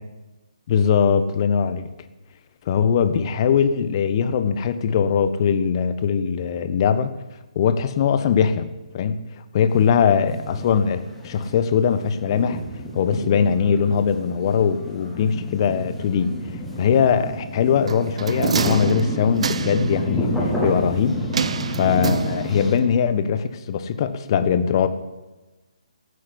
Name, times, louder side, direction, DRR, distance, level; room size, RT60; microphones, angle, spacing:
voice 1, 0.7-1.8 2.7-7.1 7.5-8.7 8.9-9.3 9.5-12.6 12.9-16.3 16.8-21.2 21.7-24.9, left 7 dB, 40° left, 11 dB, 1.3 m, -21 dB
sound 1, 9.7-22.7, equal, ahead, 4.0 m, -30 dB
sound 2, 17.9-20.0 21.3-22.8 23.1-23.2, right 6 dB, 60° right, 0.8 m, -27 dB
15.0 x 8.4 x 9.9 m, 1.1 s
figure-of-eight pair, 140°, 4 cm